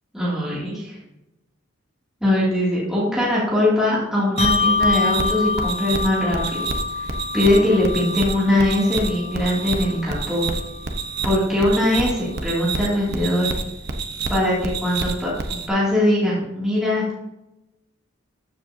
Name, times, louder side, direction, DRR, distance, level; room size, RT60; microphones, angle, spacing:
voice 1, 0.1-1.0 2.2-6.6 7.0-7.1 7.3-10.4 11.2-13.5 14.3-17.0, left 1 dB, 5° right, -8 dB, 2.5 m, -21 dB
Bell, 4.4-11.2, left 4 dB, 30° left, 0.4 m, -26 dB
sound 1, 4.4-15.7, right 3 dB, 50° right, 1.0 m, -29 dB
13.5 x 7.1 x 2.8 m, 0.92 s
head